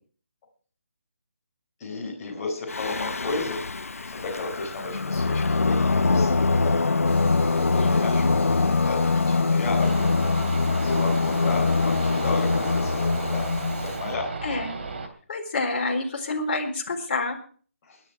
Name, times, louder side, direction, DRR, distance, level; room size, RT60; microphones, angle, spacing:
voice 1, 1.8-3.6 4.1-6.8 7.5-10.1 10.9-13.5 13.8-14.3 17.8-18.0, left 3 dB, 20° left, -4 dB, 4.2 m, -33 dB
Singing, 2.7-14.0, left 3 dB, 85° left, 0.9 m, -23 dB
sound 1, 7.0-14.0, right 1 dB, 15° right, 6.0 m, -47 dB
voice 2, 7.7-8.3 14.4-14.7 15.3-17.4, left 3 dB, 40° left, 0 dB, 4.4 m, -28 dB
The Busy Sounds Of The City On A Rainy Day, 9.8-15.1, right 4 dB, 50° right, 3.0 m, -34 dB
21.5 x 9.8 x 4.7 m, 0.44 s
figure-of-eight pair, 165°, 8 cm